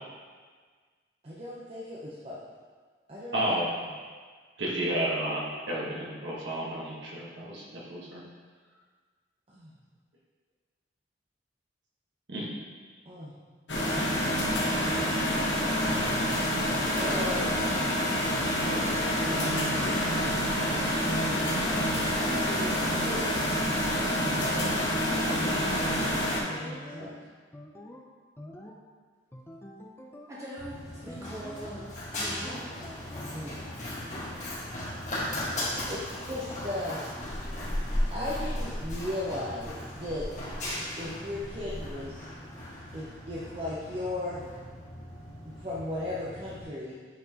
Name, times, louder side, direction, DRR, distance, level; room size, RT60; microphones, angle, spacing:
voice 1, 1.2-2.4 3.1-3.6 9.5-9.7 13.1-13.3 16.5-16.6 17.0-17.5 18.6-18.9 19.2-20.0 20.6-23.3 24.2-25.9 26.4-27.1 33.3-33.6 35.9-37.1 38.1-40.2 41.0-42.3 42.9-44.5 45.5-47.0, left 1 dB, 30° right, -8 dB, 0.7 m, -37 dB
voice 2, 3.3-3.9 4.6-8.2 12.3-12.5, right 1 dB, 75° right, -4 dB, 1.3 m, -31 dB
sound 1, 13.7-26.4, equal, 75° left, 1.0 m, -27 dB
sound 2, 23.5-23.8 24.2-27.2 27.5-28.1 28.4-28.8 29.3-30.4 31.1-31.9 32.2-33.4, left 1 dB, 15° left, 0.4 m, -45 dB
voice 3, 30.3-31.9 32.2-32.7, right 1 dB, 15° right, -7 dB, 1.2 m, -41 dB
Run, 30.6-46.6, left 1 dB, 40° left, 1.5 m, -36 dB
8.2 x 4.3 x 2.8 m, 1.5 s
head